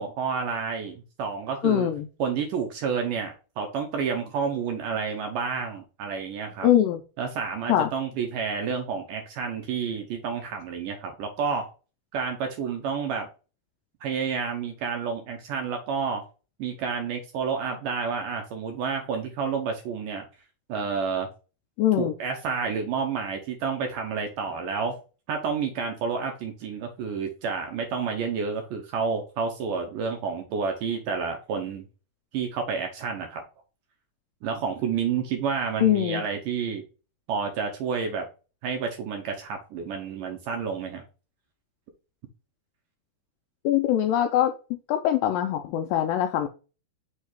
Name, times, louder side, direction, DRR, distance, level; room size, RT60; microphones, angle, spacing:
voice 1, 0.0-1.9 2.2-6.7 7.2-11.6 12.1-13.3 14.0-16.2 16.6-20.3 20.7-21.3 22.0-25.0 25.3-31.9 32.3-33.4 34.4-36.8 37.3-38.3 38.6-41.0, right 6 dB, 70° right, 2.2 m, -30 dB
voice 2, 1.6-2.1 6.6-7.0 7.7-7.9 21.8-22.1 35.8-36.2 43.6-46.5, left 11 dB, 85° left, 2.0 m, -23 dB
6.5 x 3.2 x 4.5 m
omnidirectional pair, 4.5 m